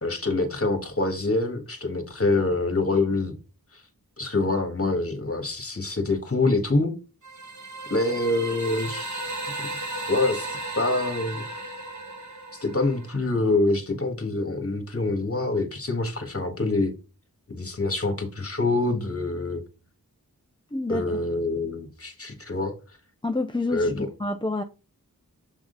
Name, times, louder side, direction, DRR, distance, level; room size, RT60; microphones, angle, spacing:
voice 1, 0.0-3.4 3.7-3.8 4.2-6.9 7.9-9.3 10.1-11.5 12.5-16.9 17.5-19.6 20.9-22.7 23.7-24.1, left 2 dB, 40° left, 1.6 m, -25 dB
sound 1, 7.2-13.2, right 2 dB, 55° right, 1.3 m, -35 dB
voice 2, 20.7-21.2 23.2-24.6, left 2 dB, 15° left, 0.5 m, -28 dB
7.2 x 3.7 x 3.9 m
wide cardioid pair, 45°, 36 cm